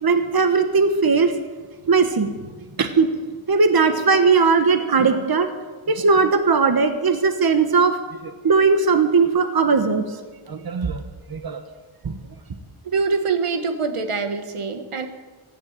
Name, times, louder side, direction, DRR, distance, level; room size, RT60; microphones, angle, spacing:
voice 1, 0.0-1.3 1.9-2.3 2.8-3.1 3.5-5.5 5.9-10.0 10.5-11.0 11.3-11.6 12.0-12.2, right 4 dB, 45° right, 9 dB, 1.3 m, -18 dB
voice 2, 12.9-15.1, right 4 dB, 85° right, 8 dB, 1.7 m, -24 dB
15.5 x 10.5 x 8.8 m, 1.4 s
wide cardioid pair, 110°, 49 cm